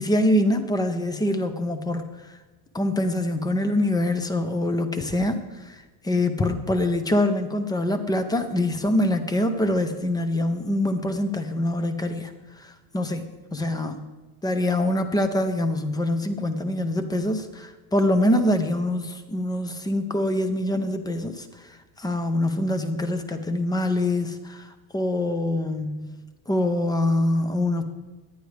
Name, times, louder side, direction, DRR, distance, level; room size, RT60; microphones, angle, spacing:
voice 1, 0.0-2.0 2.7-12.3 12.6-13.2 13.5-14.0 14.4-21.5 22.0-26.1 26.5-27.8, left 1 dB, 10° left, 9 dB, 0.6 m, -24 dB
17.5 x 11.0 x 3.4 m, 1.2 s
cardioid pair, 160°, 46 cm